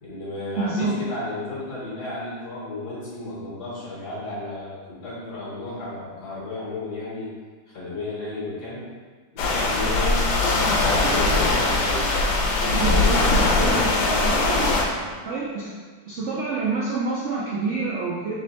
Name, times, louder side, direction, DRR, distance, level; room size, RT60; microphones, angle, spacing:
voice 1, 0.0-7.3 7.7-8.9 9.3-12.2 12.6-15.1, left 2 dB, 60° left, -8 dB, 1.5 m, -33 dB
voice 2, 0.6-0.9 12.8-13.9 14.3-14.7 15.3-15.7 16.1-18.3, right 3 dB, 85° right, -6 dB, 0.6 m, -27 dB
sound 1, 9.4-14.8, left 2 dB, 85° left, 1.5 m, -21 dB
3.6 x 3.2 x 4.0 m, 1.5 s
omnidirectional pair, 2.1 m